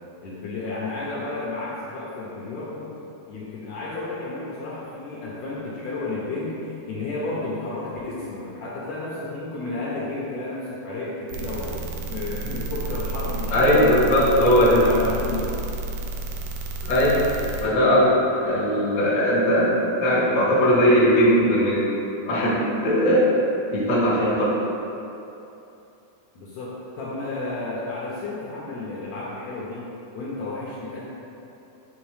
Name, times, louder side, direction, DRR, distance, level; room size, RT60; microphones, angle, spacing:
voice 1, 0.2-2.9 3.3-11.8 12.1-15.5 26.3-31.1, left 2 dB, 75° left, -7 dB, 1.7 m, -32 dB
sound 1, 11.3-17.6, right 2 dB, 85° right, 1.6 m, -31 dB
voice 2, 13.5-14.8 16.8-17.2 17.6-19.7 20.0-21.8 22.2-23.4 23.7-24.5, equal, 55° left, -8 dB, 0.8 m, -19 dB
8.3 x 3.9 x 3.2 m, 2.9 s
omnidirectional pair, 3.9 m